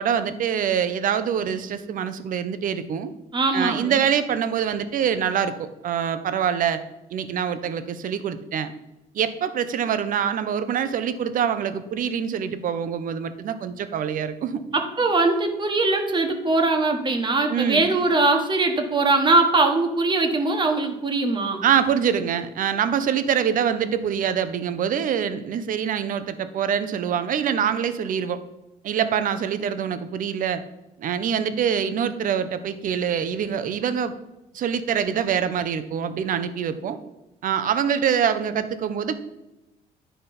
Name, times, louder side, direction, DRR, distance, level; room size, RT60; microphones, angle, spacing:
voice 1, 0.0-3.1 3.5-6.8 7.1-8.7 9.1-14.6 17.5-17.9 21.6-28.4 28.8-30.6 31.0-34.2 34.5-37.0 37.4-39.2, right 8 dB, 55° right, 11 dB, 0.7 m, -25 dB
voice 2, 3.3-4.0 14.7-21.6, right 3 dB, 25° right, 4 dB, 1.3 m, -21 dB
10.0 x 5.1 x 4.2 m, 0.98 s
cardioid pair, 110°, 17 cm